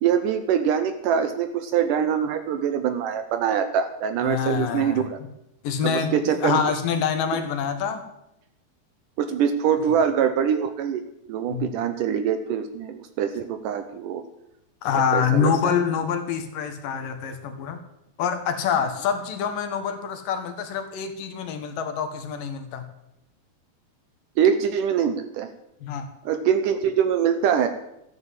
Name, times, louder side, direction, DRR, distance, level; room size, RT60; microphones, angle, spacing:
voice 1, 0.0-5.0 5.8-6.6 9.2-11.0 11.3-14.2 15.1-15.6 24.4-25.5 26.3-27.7, right 8 dB, 75° right, 9 dB, 2.1 m, -23 dB
voice 2, 4.2-5.1 5.6-8.0 11.5-11.7 14.8-17.8 18.2-22.9 25.8-26.1, left 7 dB, 70° left, 8 dB, 2.7 m, -26 dB
13.5 x 9.8 x 7.5 m, 0.82 s
omnidirectional pair, 4.3 m